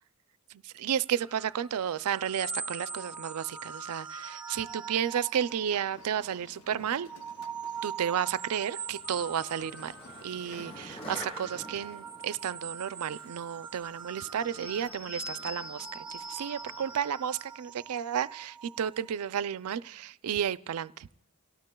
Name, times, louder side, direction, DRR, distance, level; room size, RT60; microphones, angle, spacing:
voice 1, 0.6-7.1 7.8-9.9 10.2-21.2, right 8 dB, 85° right, 16 dB, 0.4 m, -32 dB
sound 1, 1.2-6.4 6.8-19.1, right 5 dB, 5° right, 0.5 m, -42 dB
sound 2, 5.3-11.2, left 4 dB, 90° left, 0.7 m, -54 dB
Skateboard, 8.9-17.3, equal, 25° left, 3.7 m, -49 dB
29.0 x 18.0 x 2.3 m, 1.0 s
head